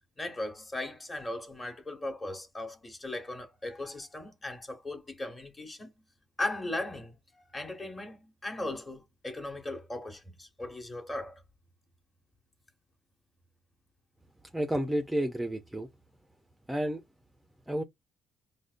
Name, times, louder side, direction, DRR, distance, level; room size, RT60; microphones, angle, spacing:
voice 1, 0.2-5.9 6.4-7.1 7.5-11.4, left 2 dB, 25° left, 1.0 m, -38 dB
voice 2, 14.5-15.9 16.7-17.0 17.7-17.8, equal, 5° right, 0.4 m, -30 dB
5.0 x 2.1 x 2.5 m
cardioid pair, 115°, 0 cm